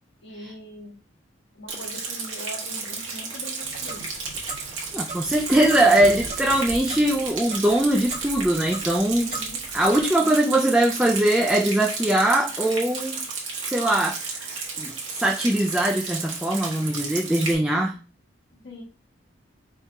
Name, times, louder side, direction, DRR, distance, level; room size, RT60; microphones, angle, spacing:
voice 1, 0.2-1.0 1.5-4.0 9.3-9.6 10.2-10.7 18.5-18.8, left 1 dB, 65° left, -1 dB, 1.4 m, -41 dB
Rain, 1.7-17.5, right 4 dB, 75° right, 1.3 m, -33 dB
Clock, 3.6-10.1, right 2 dB, 35° right, 1.5 m, -38 dB
voice 2, 4.9-9.4 9.7-13.2 13.6-18.0, right 1 dB, 5° right, 0 dB, 0.4 m, -21 dB
3.6 x 2.8 x 4.7 m, 0.33 s
head